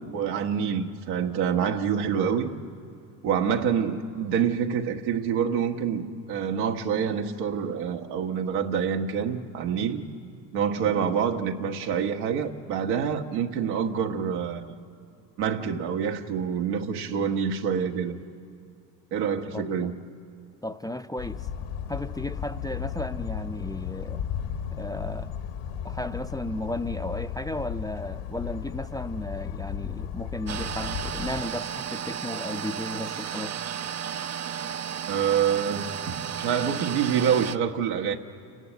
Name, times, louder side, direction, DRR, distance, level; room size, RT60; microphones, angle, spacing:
voice 1, 0.0-2.5 3.2-10.0 10.5-14.7 15.4-18.2 19.1-19.9 35.1-38.2, right 7 dB, 80° right, 1.6 m, -27 dB
voice 2, 20.6-21.5 21.9-24.3 24.7-25.4 25.8-33.6, left 1 dB, 10° left, 0.6 m, -34 dB
sound 1, 21.2-31.4, left 8 dB, 70° left, 1.3 m, -34 dB
sound 2, 30.5-37.6, right 8 dB, 35° right, 0.6 m, -33 dB
29.0 x 11.0 x 9.2 m
hypercardioid pair, 75°, 49 cm